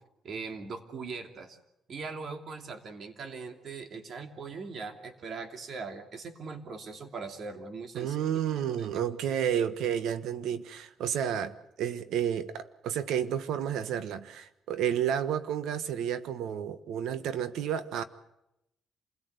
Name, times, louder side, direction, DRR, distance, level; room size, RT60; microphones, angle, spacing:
voice 1, 0.2-1.6 1.9-8.1 8.8-8.9, right 4 dB, 55° right, 2.9 m, -40 dB
voice 2, 7.9-18.0, right 9 dB, 85° right, 1.3 m, -31 dB
27.5 x 17.5 x 8.2 m
cardioid pair, 90°, 0 cm